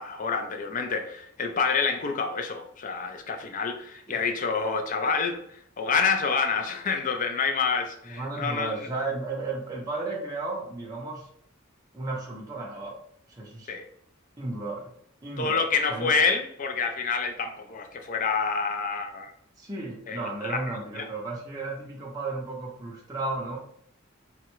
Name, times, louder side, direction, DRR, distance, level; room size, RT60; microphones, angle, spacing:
voice 1, 0.0-8.9 13.7-13.8 15.4-19.3 20.1-21.0, left 5 dB, 40° left, 0.4 m, -28 dB
voice 2, 8.1-11.3 11.9-12.9 13.3-13.7 14.4-14.9 15.2-15.6 15.9-16.2 19.6-23.6, right 3 dB, 20° right, 0.5 m, -34 dB
3.6 x 2.1 x 2.9 m
head